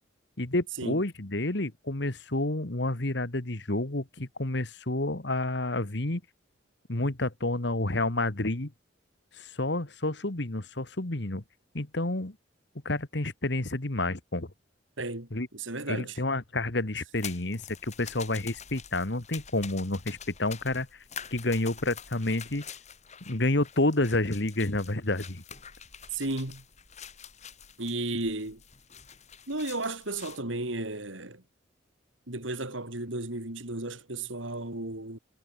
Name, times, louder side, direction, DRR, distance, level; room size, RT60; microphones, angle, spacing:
voice 1, 0.4-6.2 6.9-8.7 9.4-11.4 11.7-12.3 12.9-14.5 15.3-15.5 15.9-20.9 21.3-22.6 23.3-25.4, left 2 dB, 60° left, 1.9 m, -29 dB
voice 2, 15.0-15.3 15.5-16.2 26.1-26.6 27.8-28.6 29.5-31.4 32.3-35.2, right 2 dB, 75° right, 4.1 m, -34 dB
sound 1, 17.2-30.4, left 7 dB, 35° left, 5.3 m, -46 dB
head